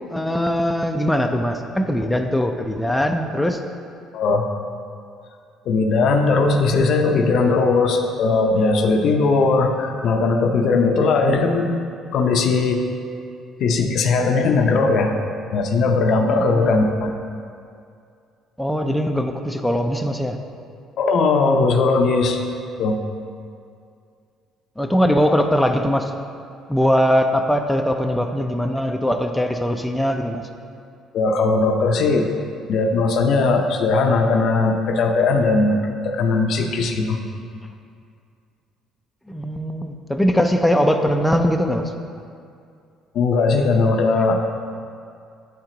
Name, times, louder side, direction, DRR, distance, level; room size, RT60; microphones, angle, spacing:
voice 1, 0.1-3.6 16.3-16.7 18.6-20.4 24.8-26.1 26.7-30.4 39.3-41.9, equal, 5° left, 4 dB, 0.4 m, -21 dB
voice 2, 4.1-4.5 5.7-11.7 12.1-12.8 13.6-15.1 15.5-17.1 21.0-22.4 22.8-23.0 31.1-32.3 32.7-35.8 36.0-37.2 43.1-44.4, left 3 dB, 65° left, 4 dB, 0.6 m, -18 dB
7.9 x 4.4 x 3.8 m, 2.4 s
supercardioid pair, 85°, 0 cm